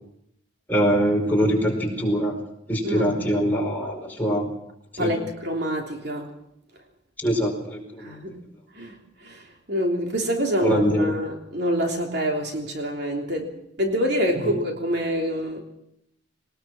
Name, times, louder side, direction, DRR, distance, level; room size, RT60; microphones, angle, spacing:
voice 1, 0.7-2.3 2.7-4.5 5.0-5.1 7.2-8.1 10.6-11.1, equal, 10° left, -1 dB, 5.0 m, -23 dB
voice 2, 2.8-3.3 5.0-6.3 8.0-8.4 8.7-15.6, equal, 55° right, 2 dB, 3.2 m, -26 dB
22.0 x 20.0 x 6.1 m, 0.74 s
head